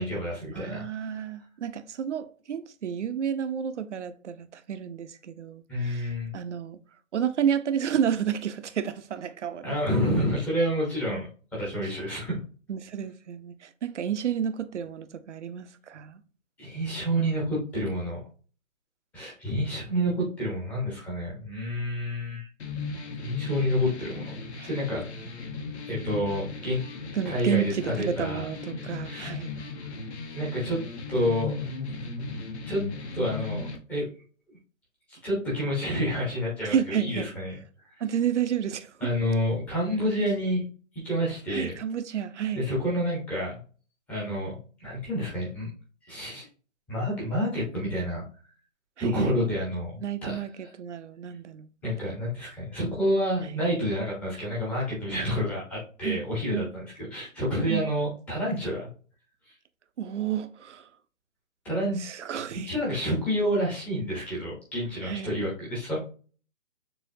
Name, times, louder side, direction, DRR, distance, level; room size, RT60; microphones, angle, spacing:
voice 1, 0.0-1.2 5.7-6.3 9.6-11.3 11.5-12.4 16.6-18.2 19.1-22.5 23.2-24.3 24.6-25.0 25.9-26.8 27.3-28.5 29.0-29.3 30.3-30.8 31.1-31.5 32.7-32.8 33.1-34.1 35.1-37.5 37.9-38.0 39.0-40.7 40.9-41.7 42.5-43.6 44.1-45.7 46.1-46.4 46.9-48.2 49.0-50.4 51.8-58.9 61.6-62.0 62.5-66.0, equal, 5° left, 0.9 m, -29 dB
voice 2, 0.5-6.8 7.1-9.7 12.7-16.2 24.6-24.7 27.1-29.6 36.6-37.3 38.0-38.9 41.5-42.7 49.0-49.4 50.0-51.7 55.1-55.3 56.0-56.2 56.5-56.7 57.6-57.9 60.0-60.9 62.0-62.8 65.0-65.4, right 8 dB, 60° right, 0.8 m, -31 dB
sound 1, 22.6-33.8, left 3 dB, 55° left, 1.3 m, -37 dB
6.9 x 2.8 x 2.6 m
hypercardioid pair, 165°, 40 cm